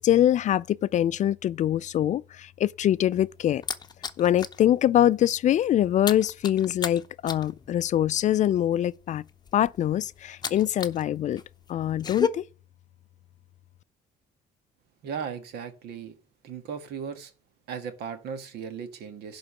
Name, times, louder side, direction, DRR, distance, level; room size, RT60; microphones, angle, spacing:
voice 1, 0.0-3.6 4.2-9.2 9.5-11.4 11.7-12.4, left 11 dB, 45° left, 0.4 m, -24 dB
hand san bottle, 2.8-4.6 5.0-5.2 5.5-11.0 11.3-12.3, left 6 dB, 25° left, 0.8 m, -33 dB
voice 2, 15.0-16.2 16.4-17.3 17.7-19.4, right 6 dB, 75° right, 1.6 m, -36 dB
11.0 x 3.8 x 7.3 m
cardioid pair, 110°, 17 cm